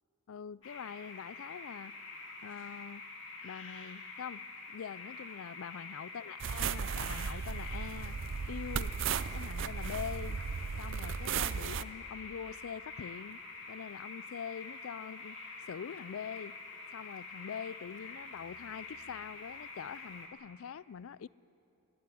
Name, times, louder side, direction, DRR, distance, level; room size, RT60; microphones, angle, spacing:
voice 1, 0.3-1.9 2.4-3.1 3.4-8.2 8.5-9.0 9.3-10.4 10.8-13.4 13.7-15.4 15.6-16.6 16.9-21.3, left 7 dB, 85° left, 21 dB, 0.4 m, -44 dB
sound 1, 0.6-20.3, left 3 dB, 60° left, 2.8 m, -47 dB
sound 2, 6.4-11.8, right 6 dB, 65° right, 0.5 m, -36 dB
21.5 x 15.5 x 10.0 m, 3.0 s
head